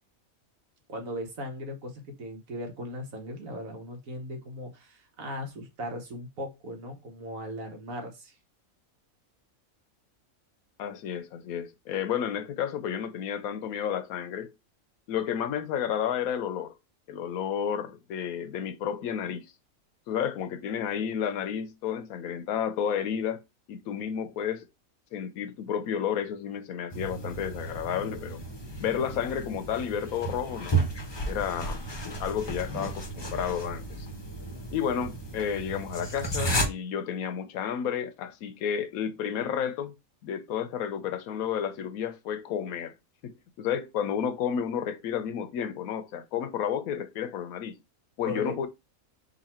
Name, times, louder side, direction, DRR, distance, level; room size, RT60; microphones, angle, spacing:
voice 1, 0.9-8.3 48.2-48.5, equal, 70° right, 1.6 m, -38 dB
voice 2, 10.8-14.5 15.1-16.7 17.1-19.5 20.1-23.4 23.7-24.6 25.1-28.4 28.8-30.8 31.3-31.8 32.2-34.1 34.7-40.0 40.2-42.9 43.2-47.8 48.2-48.7, left 8 dB, 80° left, 1.1 m, -31 dB
sound 1, 26.9-36.7, right 2 dB, 25° left, 0.6 m, -33 dB
4.0 x 2.7 x 4.2 m
omnidirectional pair, 1.5 m